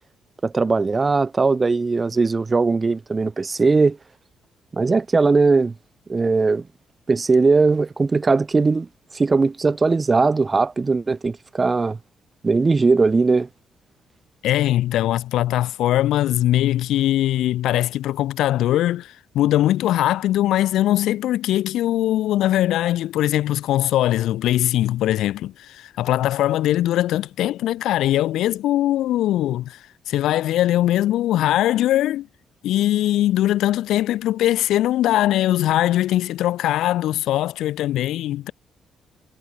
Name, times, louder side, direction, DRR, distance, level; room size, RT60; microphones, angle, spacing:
voice 1, 0.4-4.0 4.7-5.7 6.1-6.6 7.1-8.9 9.1-12.0 12.4-13.5, right 4 dB, 30° right, 2.5 m, -19 dB
voice 2, 14.4-32.3 32.6-38.5, left 13 dB, 85° left, 1.4 m, -21 dB
cardioid pair, 90°, 0 cm